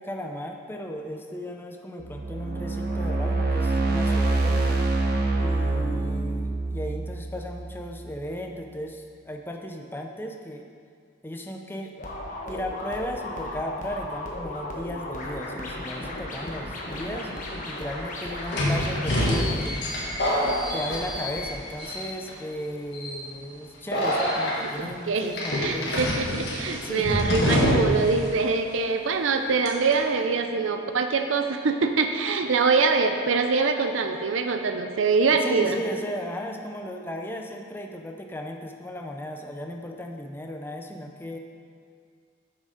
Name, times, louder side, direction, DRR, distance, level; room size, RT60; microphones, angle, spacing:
voice 1, 0.0-4.8 5.4-10.7 11.2-11.9 12.5-17.3 17.6-20.1 20.7-26.0 26.8-27.3 35.4-41.4, equal, 10° left, 2 dB, 0.5 m, -35 dB
sound 1, 2.0-8.2, right 2 dB, 50° right, 0.9 m, -26 dB
sound 2, 12.0-21.6, left 1 dB, 40° left, 1.1 m, -35 dB
sound 3, 17.2-17.3 18.5-21.5 21.8-22.3 22.9-23.2 23.9-24.5 25.3-28.1 28.3-28.4 29.6-29.9, equal, 55° left, 1.6 m, -25 dB
voice 2, 24.8-25.3 25.6-35.8, right 4 dB, 75° right, 6 dB, 0.5 m, -24 dB
7.2 x 6.5 x 5.0 m, 2.2 s
head